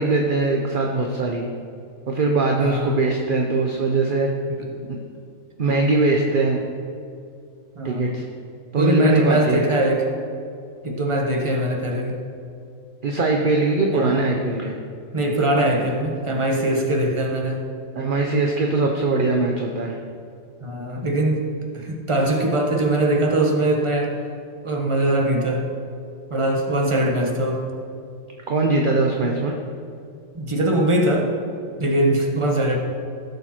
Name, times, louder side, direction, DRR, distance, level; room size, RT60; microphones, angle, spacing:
voice 1, 0.0-1.4 2.1-4.3 4.9-5.0 5.6-6.6 7.8-8.2 8.7-9.6 13.0-14.7 18.0-19.9 28.5-29.6, right 3 dB, 45° right, 1 dB, 1.0 m, -21 dB
voice 2, 2.6-3.0 4.6-4.8 7.7-8.2 8.7-10.1 10.8-12.2 13.9-14.2 15.1-17.6 20.6-21.4 21.7-24.1 24.6-25.7 26.3-27.7 30.3-31.3 31.8-32.8, right 1 dB, 25° right, 1 dB, 1.3 m, -21 dB
17.0 x 6.8 x 4.4 m, 2.4 s
omnidirectional pair, 1.4 m